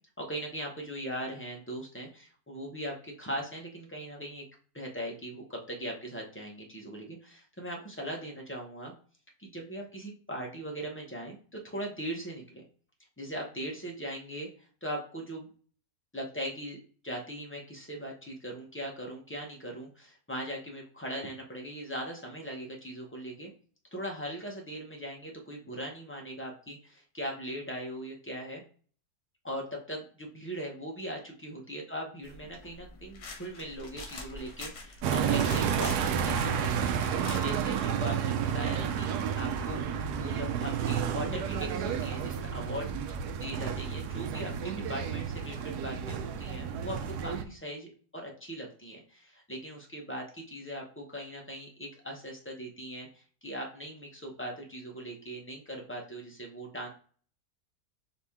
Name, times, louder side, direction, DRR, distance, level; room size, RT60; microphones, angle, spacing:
voice 1, 0.2-4.4 4.7-8.9 9.4-12.6 13.2-15.5 16.1-23.5 23.9-28.6 29.4-36.9 37.3-39.1 39.4-39.8 40.2-56.9, equal, 20° left, 0 dB, 0.4 m, -40 dB
sound 1, 32.2-37.4, left 3 dB, 85° left, 1.7 m, -45 dB
sound 2, 35.0-47.4, right 7 dB, 90° right, 1.1 m, -31 dB
4.9 x 2.8 x 3.5 m, 0.43 s
omnidirectional pair, 1.6 m